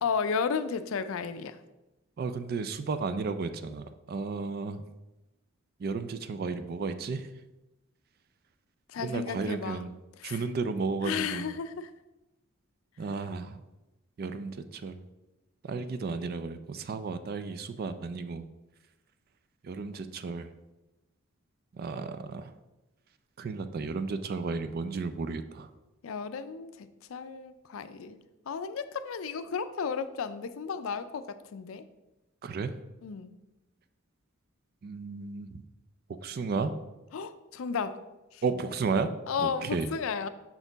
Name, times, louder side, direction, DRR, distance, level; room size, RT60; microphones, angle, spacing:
voice 1, 0.0-1.6 8.9-9.9 10.2-10.5 11.0-11.9 26.0-31.9 33.0-33.3 37.1-38.0 38.3-38.4 39.3-40.3, left 6 dB, 75° left, 12 dB, 0.4 m, -33 dB
voice 2, 2.2-4.8 5.8-7.3 9.0-10.0 10.2-11.5 13.0-13.6 14.2-15.0 15.6-18.4 19.6-20.5 21.7-22.5 23.4-25.7 32.4-32.7 34.8-35.6 36.2-36.7 38.4-39.1 39.4-39.9, right 4 dB, 45° right, 10 dB, 0.3 m, -33 dB
5.9 x 4.3 x 3.9 m, 1.0 s
head